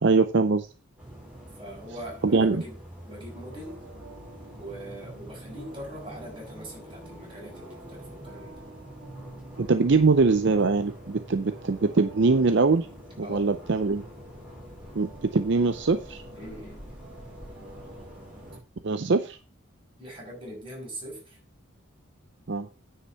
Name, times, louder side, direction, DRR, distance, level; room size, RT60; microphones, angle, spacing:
voice 1, 0.0-0.7 2.2-2.6 9.6-12.9 13.2-14.0 14.9-16.2 18.8-19.4 22.5-22.7, right 4 dB, 55° right, 9 dB, 0.6 m, -22 dB
sound 1, 1.0-18.6, equal, 5° right, 5.0 m, -45 dB
voice 2, 1.6-2.7 3.1-3.8 4.6-8.7 13.2-13.5 16.3-16.9 20.0-21.4, right 1 dB, 25° right, -2 dB, 5.9 m, -42 dB
sound 2, 3.3-18.6, right 2 dB, 75° right, 2.1 m, -51 dB
9.6 x 5.7 x 5.7 m, 0.33 s
head